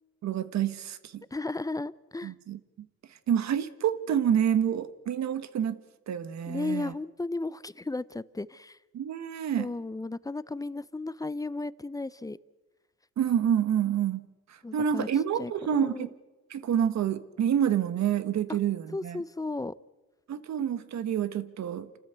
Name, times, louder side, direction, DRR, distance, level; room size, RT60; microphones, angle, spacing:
voice 1, 0.2-1.2 2.2-2.6 3.3-5.8 6.1-6.9 8.9-9.7 13.2-16.1 16.5-19.2 20.3-21.9, right 9 dB, 65° right, 1.4 m, -28 dB
voice 2, 1.3-2.3 6.5-8.8 9.6-12.4 14.6-15.1 15.4-16.1 18.9-19.7, left 2 dB, 10° left, 0.6 m, -34 dB
29.5 x 13.5 x 8.2 m
cardioid pair, 90°, 30 cm